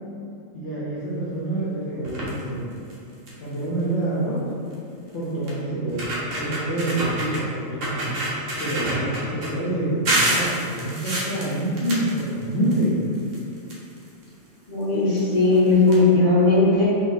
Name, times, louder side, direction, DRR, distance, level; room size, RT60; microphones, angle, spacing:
voice 1, 0.5-2.8 3.4-4.5 5.1-8.2 8.6-13.0, right 1 dB, 65° left, -7 dB, 0.9 m, -27 dB
sound 1, 2.0-2.4 2.9-3.0 3.3-3.5 4.7-4.8 5.5-5.6 5.9-7.4 7.8-9.5 10.1-12.8 13.1-14.2 15.1-15.2 15.5-15.6 15.9-16.0, right 1 dB, 70° right, 1.1 m, -27 dB
voice 2, 14.7-16.9, left 3 dB, 25° left, -9 dB, 0.9 m, -18 dB
3.7 x 2.8 x 2.6 m, 2.6 s
omnidirectional pair, 1.4 m